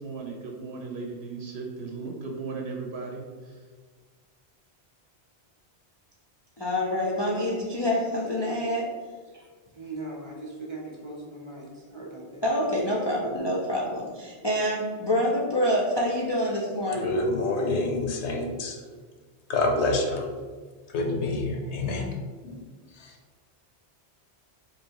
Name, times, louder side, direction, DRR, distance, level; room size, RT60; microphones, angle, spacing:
voice 1, 0.0-3.6, right 4 dB, 75° right, 0 dB, 0.8 m, -36 dB
voice 2, 6.6-8.8 12.4-14.0 14.4-17.1, left 1 dB, 45° left, -3 dB, 0.3 m, -26 dB
voice 3, 9.7-12.4, right 2 dB, 35° right, -1 dB, 0.6 m, -39 dB
voice 4, 16.9-18.8 19.5-20.3 20.9-22.1 22.4-22.6 22.9-23.1, left 2 dB, 90° left, 2 dB, 0.9 m, -27 dB
3.1 x 2.7 x 4.5 m, 1.5 s
omnidirectional pair, 1.1 m